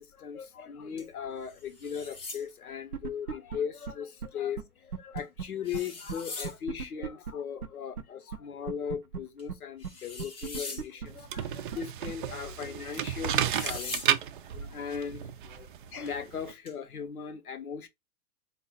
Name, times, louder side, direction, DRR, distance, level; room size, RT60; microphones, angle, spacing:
voice 1, 0.0-14.2 14.5-17.9, left 7 dB, 70° left, 0.9 m, -38 dB
sound 1, 1.0-1.1 1.5-2.4 5.2-5.3 5.6-6.6 9.4-9.5 9.8-10.9 12.9-13.0 13.5-14.1 16.7-16.8, left 3 dB, 15° left, 0.6 m, -41 dB
sound 2, 2.9-3.6 3.9-4.0 4.2-4.3 4.6-4.7 4.9-5.4 5.7-5.8 6.1-6.2 6.4-7.3 7.6-7.7 8.0-8.1 8.3-8.4 8.7-9.2 9.5-9.6 9.8-9.9 10.2-11.1 11.4-11.5 11.7-11.8 12.1-12.2, right 6 dB, 85° right, 0.6 m, -35 dB
sound 3, 11.1-16.5, right 10 dB, 40° right, 0.4 m, -33 dB
4.2 x 2.4 x 3.6 m
figure-of-eight pair, 105°, 45 cm